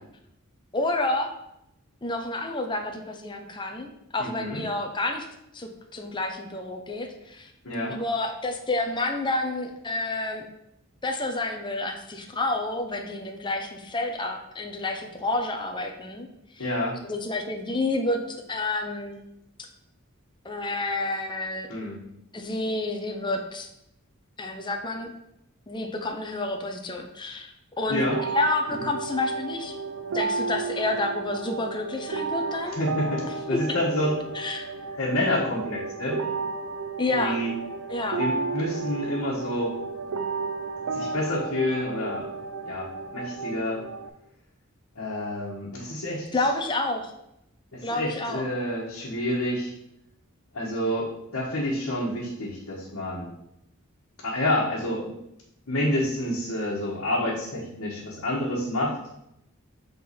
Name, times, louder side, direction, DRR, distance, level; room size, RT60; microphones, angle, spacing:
voice 1, 0.7-1.3 2.0-5.3 5.5-7.5 7.9-10.4 11.0-16.3 16.6-16.7 17.0-19.2 20.4-21.7 22.3-23.7 24.4-25.1 25.7-28.1 28.3-29.7 30.1-32.8 33.5-33.6 34.3-34.7 37.0-37.4 37.9-38.2 46.3-47.1 47.8-48.4, left 2 dB, 20° left, 4 dB, 0.6 m, -29 dB
voice 2, 4.2-4.6 7.6-8.0 16.6-17.0 21.7-22.0 27.9-28.2 32.7-33.2 33.5-34.1 35.0-36.2 37.1-37.5 38.2-39.7 40.9-42.3 42.6-43.8 44.9-46.3 47.7-49.7 50.5-53.3 54.2-55.1 55.7-59.1, left 1 dB, 80° left, -8 dB, 1.5 m, -28 dB
sound 1, 28.1-44.1, right 4 dB, 75° right, 0.5 m, -33 dB
6.8 x 3.9 x 4.2 m, 0.81 s
head